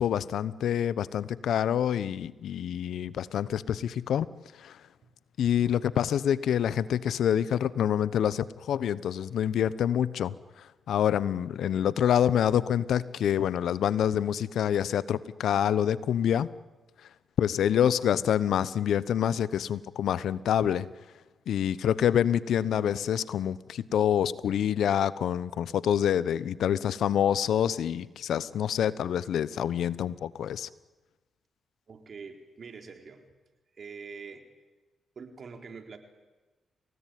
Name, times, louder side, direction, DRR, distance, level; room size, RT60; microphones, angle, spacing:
voice 1, 0.0-4.3 4.5-4.8 5.4-16.5 17.4-20.9 21.5-30.7, left 9 dB, 75° left, 18 dB, 0.9 m, -27 dB
voice 2, 31.9-33.2 33.7-34.4 35.2-36.0, right 5 dB, 55° right, 5 dB, 4.2 m, -44 dB
29.0 x 18.0 x 9.3 m, 1.2 s
supercardioid pair, 55°, 0 cm